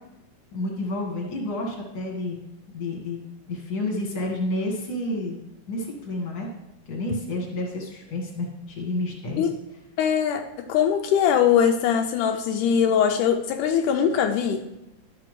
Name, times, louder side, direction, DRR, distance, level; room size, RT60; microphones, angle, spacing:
voice 1, 0.5-2.4 2.7-3.2 3.5-5.4 5.7-6.5 6.9-9.5, left 1 dB, 35° left, -1 dB, 1.9 m, -30 dB
voice 2, 10.0-14.6, left 8 dB, 80° left, 5 dB, 2.0 m, -21 dB
12.0 x 5.9 x 3.2 m, 0.92 s
omnidirectional pair, 3.6 m